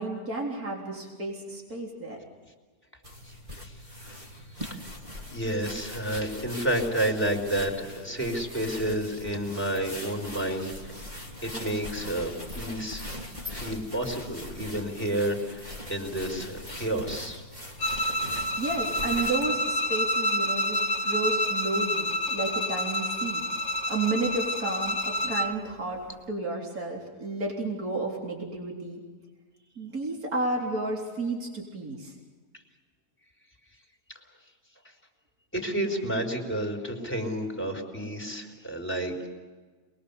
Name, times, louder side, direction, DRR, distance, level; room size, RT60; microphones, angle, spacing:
voice 1, 0.0-2.2 18.6-23.4 23.9-26.0 26.3-29.0 29.8-32.1, right 2 dB, 70° right, -1 dB, 4.3 m, -32 dB
sound 1, 3.0-19.5, left 1 dB, 30° right, 3.1 m, -41 dB
voice 2, 5.3-10.9 11.4-13.0 13.5-17.4 35.5-39.3, right 1 dB, 5° left, 4 dB, 4.4 m, -30 dB
Bowed string instrument, 17.8-25.6, equal, 50° left, 1.8 m, -28 dB
28.0 x 21.5 x 7.0 m, 1.4 s
omnidirectional pair, 1.6 m